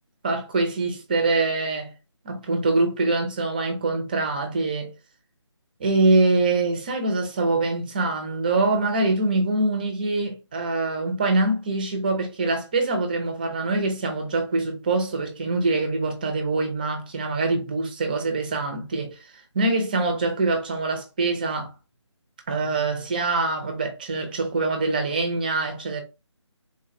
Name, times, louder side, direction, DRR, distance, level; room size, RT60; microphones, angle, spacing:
voice 1, 0.2-1.9 2.2-4.9 5.8-19.2 19.5-21.7 22.5-26.0, right 3 dB, 20° right, 0.6 m, -24 dB
3.8 x 2.3 x 2.6 m
figure-of-eight pair, 165°, 15 cm